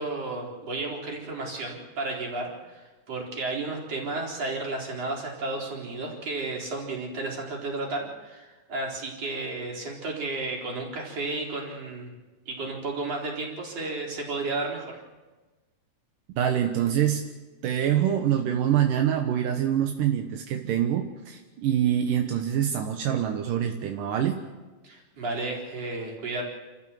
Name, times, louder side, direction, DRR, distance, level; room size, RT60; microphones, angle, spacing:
voice 1, 0.0-12.1 12.5-14.9 24.8-26.4, right 2 dB, 50° right, -1 dB, 5.0 m, -33 dB
voice 2, 16.4-17.3 17.6-24.4, right 10 dB, 80° right, 4 dB, 2.8 m, -25 dB
30.0 x 14.0 x 7.6 m, 1.2 s
omnidirectional pair, 3.8 m